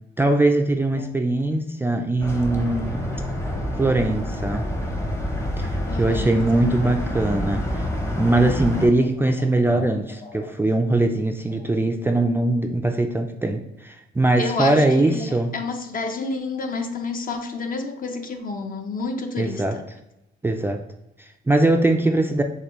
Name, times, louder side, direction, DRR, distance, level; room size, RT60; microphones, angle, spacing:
voice 1, 0.2-3.0 3.8-4.7 5.6-7.8 8.1-15.5 19.4-19.8 20.4-20.8 21.2-22.4, right 2 dB, 10° right, 4 dB, 0.3 m, -21 dB
sound 1, 2.2-8.9, equal, 15° left, 0.8 m, -28 dB
voice 2, 5.9-6.7 7.7-7.9 9.8-9.9 10.2-10.5 14.4-19.8, left 3 dB, 45° left, 5 dB, 0.7 m, -30 dB
6.6 x 2.3 x 3.0 m, 0.89 s
cardioid pair, 90°, 20 cm